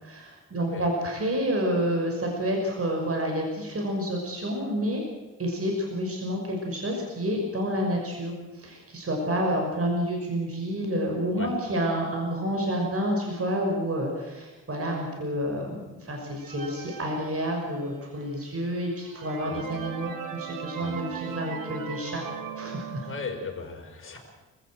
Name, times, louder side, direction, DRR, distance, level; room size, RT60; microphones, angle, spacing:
voice 1, 0.0-5.0 5.4-22.2 22.6-23.1, equal, 45° right, 1 dB, 6.1 m, -29 dB
sound 1, 16.4-18.0 18.6-18.7 19.0-23.6, right 7 dB, 80° right, 2.7 m, -38 dB
voice 2, 23.0-24.2, left 4 dB, 40° left, 0 dB, 6.1 m, -37 dB
27.5 x 16.0 x 7.8 m, 1.2 s
cardioid pair, 90°, 33 cm